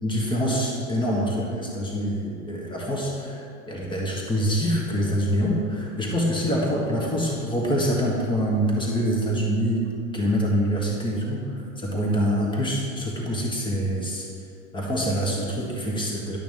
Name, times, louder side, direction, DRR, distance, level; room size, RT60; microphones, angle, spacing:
voice 1, 0.0-3.4 3.7-9.8 10.1-14.2 14.7-16.4, equal, 10° left, -3 dB, 1.7 m, -25 dB
11.0 x 5.9 x 3.6 m, 2.3 s
hypercardioid pair, 100°, 43 cm